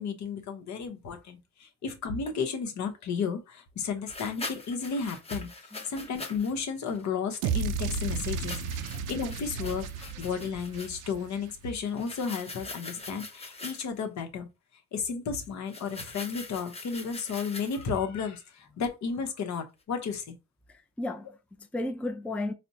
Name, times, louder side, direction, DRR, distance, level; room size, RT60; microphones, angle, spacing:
voice 1, 0.0-8.6 9.1-14.5 14.9-20.4, left 5 dB, 65° left, 0.9 m, -33 dB
sound 1, 2.3-2.4 4.1-6.5 6.9-7.1 8.3-11.0 11.9-14.0 15.7-18.0, left 3 dB, 20° left, 0.8 m, -43 dB
voice 2, 5.7-6.1 8.9-9.0 20.7-22.5, left 2 dB, 5° left, 0.4 m, -35 dB
sound 2, 7.4-11.7, right 5 dB, 85° right, 0.5 m, -33 dB
4.1 x 2.1 x 2.7 m
cardioid pair, 90°, 30 cm